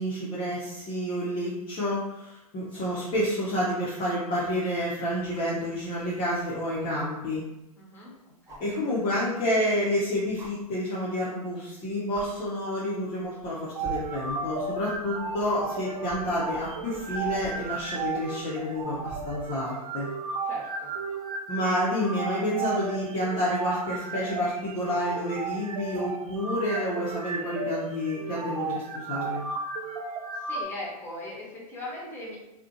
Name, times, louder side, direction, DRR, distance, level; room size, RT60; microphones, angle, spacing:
voice 1, 0.0-7.4 8.6-20.1 21.5-29.4, equal, 30° left, -7 dB, 0.6 m, -29 dB
sound 1, 6.3-6.4 8.5-8.8 10.4-10.5 11.6-11.8 12.1-12.3 13.2-13.5 13.8-19.5 21.2-21.3, right 4 dB, 15° right, 0.5 m, -46 dB
voice 2, 7.8-8.6 20.4-20.9 30.3-32.4, left 1 dB, 10° left, -5 dB, 0.9 m, -40 dB
sound 2, 13.7-30.6, right 4 dB, 70° right, 0.4 m, -34 dB
2.4 x 2.1 x 2.6 m, 0.93 s
hypercardioid pair, 105°, 19 cm